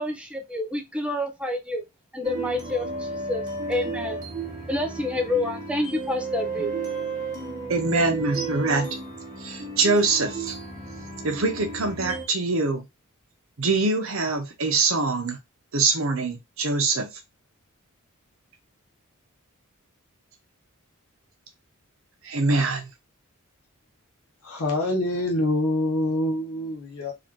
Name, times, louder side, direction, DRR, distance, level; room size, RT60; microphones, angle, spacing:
voice 1, 0.0-1.8 2.1-4.2 4.7-6.7, left 2 dB, 5° right, 0.5 m, -28 dB
sound 1, 2.2-12.2, right 3 dB, 35° right, 1.1 m, -33 dB
voice 2, 7.7-8.9 9.4-10.5 11.2-12.8 13.6-15.4 15.7-17.1 22.2-22.9, right 3 dB, 65° right, 0.9 m, -24 dB
voice 3, 24.4-27.1, left 1 dB, 85° left, 0.9 m, -25 dB
3.8 x 2.5 x 3.0 m
head